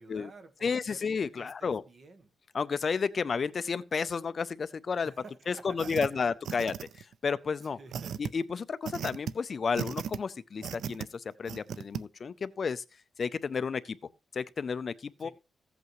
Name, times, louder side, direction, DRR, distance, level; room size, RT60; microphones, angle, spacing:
voice 1, 0.0-1.1 1.4-2.3 5.0-6.2 7.6-8.4 15.2-15.3, right 3 dB, 45° right, 1.3 m, -51 dB
voice 2, 0.6-1.8 2.5-5.1 5.5-7.8 8.2-12.8 13.2-14.0 14.3-15.3, left 5 dB, 40° left, 0.5 m, -32 dB
sound 1, 5.8-6.1 6.4-7.1 7.9-8.3 8.9-9.3 9.7-10.2 10.6-11.1 11.5-12.0, right 8 dB, 80° right, 0.4 m, -36 dB
15.5 x 8.1 x 3.1 m
wide cardioid pair, 145°, 0 cm